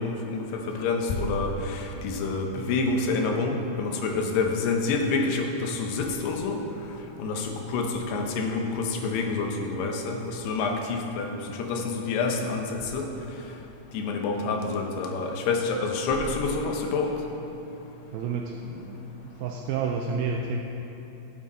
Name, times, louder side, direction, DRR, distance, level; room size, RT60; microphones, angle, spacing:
voice 1, 0.0-6.6 7.2-13.1 13.9-17.1, left 3 dB, 90° left, 3 dB, 3.0 m, -28 dB
voice 2, 18.1-20.6, right 5 dB, 80° right, 1 dB, 2.4 m, -30 dB
13.0 x 7.5 x 4.1 m, 3.0 s
omnidirectional pair, 4.6 m